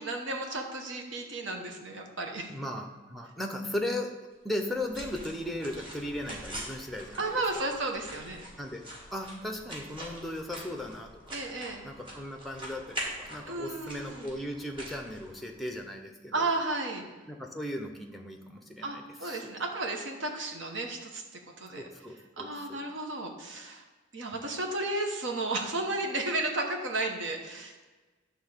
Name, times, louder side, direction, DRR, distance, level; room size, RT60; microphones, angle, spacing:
voice 1, 0.0-2.5 7.2-8.4 11.3-11.8 13.5-14.3 16.3-17.1 18.8-21.2 21.6-21.9 22.4-23.8 24.1-27.8, right 2 dB, 70° right, 2 dB, 1.1 m, -33 dB
voice 2, 2.5-4.2 4.4-7.4 8.6-8.8 9.1-11.5 11.8-16.5 17.3-19.6 21.8-22.8, left 1 dB, ahead, 3 dB, 0.6 m, -37 dB
sound 1, 4.5-15.8, right 1 dB, 25° right, 1.5 m, -44 dB
9.2 x 3.6 x 6.6 m, 1.2 s
head